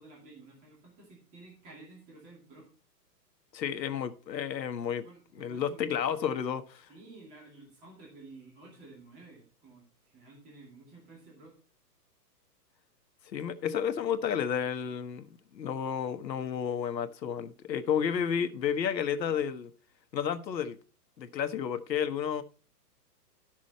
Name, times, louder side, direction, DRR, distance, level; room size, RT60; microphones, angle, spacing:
voice 1, 0.0-2.7 5.0-6.0 6.9-11.5, right 3 dB, 15° right, 2.4 m, -52 dB
voice 2, 3.5-5.0 5.3-6.9 13.3-19.7 20.1-20.8 21.2-22.4, left 8 dB, 90° left, 1.3 m, -31 dB
12.5 x 6.3 x 4.1 m
hypercardioid pair, 170°, 50 cm